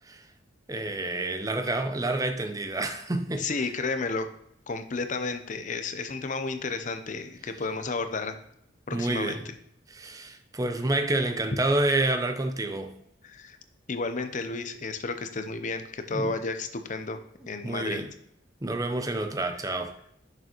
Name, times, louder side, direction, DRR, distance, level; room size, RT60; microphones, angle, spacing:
voice 1, 0.7-3.5 8.9-9.4 9.9-13.0 16.1-16.3 17.6-18.1 18.6-19.9, right 2 dB, 20° right, 0.6 m, -28 dB
voice 2, 3.4-4.3 4.7-8.4 8.9-9.4 13.2-13.6 13.9-17.2 17.5-18.0, left 3 dB, 40° left, 0.6 m, -32 dB
6.6 x 6.4 x 3.0 m
head